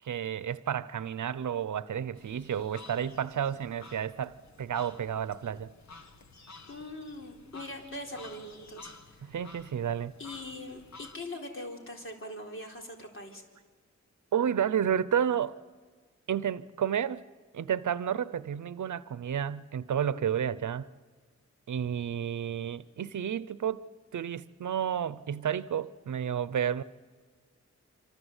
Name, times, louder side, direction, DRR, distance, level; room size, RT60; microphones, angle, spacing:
voice 1, 0.0-5.7 9.2-10.1 14.3-15.6 16.3-17.2 17.5-20.9 21.7-23.8 24.1-26.8, right 8 dB, 85° right, 0.8 m, -31 dB
sound 1, 2.1-11.2, left 3 dB, 65° left, 1.8 m, -52 dB
voice 2, 6.7-9.0 10.2-13.4, left 1 dB, 45° left, 4.0 m, -41 dB
26.5 x 25.5 x 8.2 m
wide cardioid pair, 130°, 29 cm